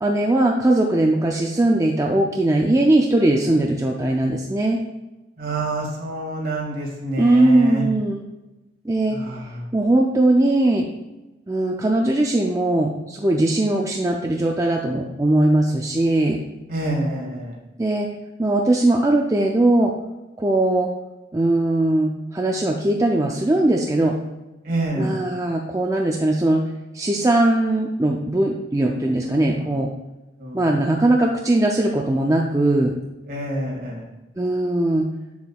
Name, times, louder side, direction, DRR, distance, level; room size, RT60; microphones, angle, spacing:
voice 1, 0.0-4.8 7.2-8.2 8.8-9.2 9.7-10.9 11.5-16.4 17.8-18.1 18.4-19.9 20.4-20.9 21.3-24.2 24.9-26.6 26.9-29.9 30.5-32.9 34.4-35.1, right 1 dB, 20° right, 0 dB, 0.4 m, -19 dB
voice 2, 5.4-7.8 9.1-9.6 16.7-17.5 24.6-25.2 29.2-29.4 29.7-29.8 30.4-30.7 33.3-34.0, right 1 dB, 55° right, -2 dB, 2.1 m, -27 dB
7.9 x 7.0 x 2.4 m, 1.0 s
head